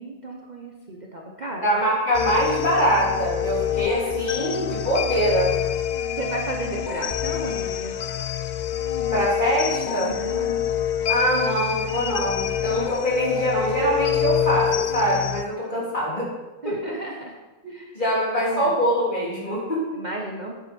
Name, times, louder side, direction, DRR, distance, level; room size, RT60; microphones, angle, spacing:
voice 1, 0.0-1.8 6.2-8.0 10.0-10.5 15.6-15.9 16.6-17.3 17.7-17.9 18.3-18.7 19.9-20.5, right 2 dB, 40° right, 0 dB, 1.0 m, -34 dB
voice 2, 1.6-5.5 9.1-10.1 11.1-16.3 16.6-16.9 17.6-20.0, equal, 40° left, -6 dB, 3.4 m, -23 dB
sound 1, 2.1-15.4, left 9 dB, 60° left, 0.4 m, -26 dB
9.9 x 8.5 x 4.4 m, 1.2 s
omnidirectional pair, 1.3 m